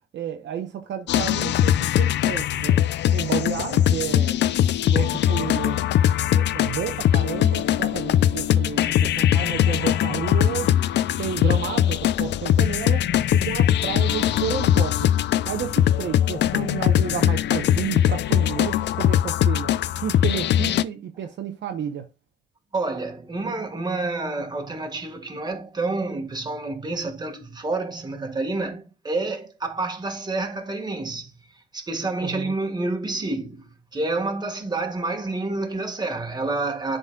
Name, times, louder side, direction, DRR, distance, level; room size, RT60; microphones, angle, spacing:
voice 1, 0.1-2.8 3.1-4.4 4.8-5.8 6.3-10.7 11.2-13.0 13.3-15.1 15.5-19.7 20.0-22.0 32.2-32.5, right 8 dB, 65° right, 0.8 m, -31 dB
sound 1, 1.1-20.8, left 11 dB, 60° left, 0.4 m, -21 dB
voice 2, 22.7-31.4 31.7-37.0, right 2 dB, 20° right, 1.6 m, -28 dB
11.0 x 4.1 x 2.3 m
cardioid pair, 90°, 20 cm